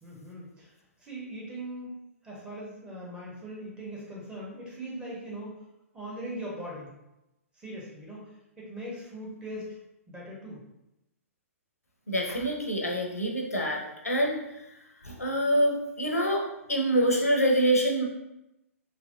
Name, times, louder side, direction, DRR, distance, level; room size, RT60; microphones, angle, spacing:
voice 1, 0.0-0.7 1.0-5.6 5.9-6.9 7.5-9.7 10.1-10.6, right 1 dB, 10° right, -5 dB, 0.8 m, -40 dB
voice 2, 12.1-14.4 15.0-16.4 16.7-18.0, right 1 dB, 80° left, 0 dB, 0.7 m, -25 dB
3.4 x 2.9 x 2.5 m, 0.92 s
figure-of-eight pair, 120°, 8 cm